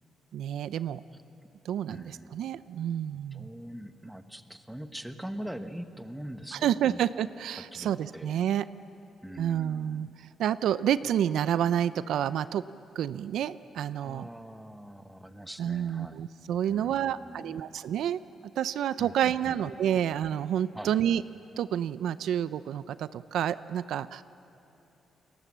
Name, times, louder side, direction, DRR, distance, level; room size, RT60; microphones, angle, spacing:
voice 1, 0.3-1.0 1.6-3.5 6.5-8.6 9.4-10.1 10.4-12.6 13.0-14.2 15.6-18.2 18.6-21.2 21.6-24.2, right 10 dB, 80° right, 15 dB, 0.5 m, -29 dB
voice 2, 1.9-2.6 3.3-7.1 7.7-8.4 9.2-10.1 14.0-16.3 16.6-17.7 19.0-19.6 20.7-21.0, equal, 5° right, 9 dB, 1.1 m, -43 dB
29.5 x 21.0 x 7.4 m, 2.9 s
cardioid pair, 130°, 0 cm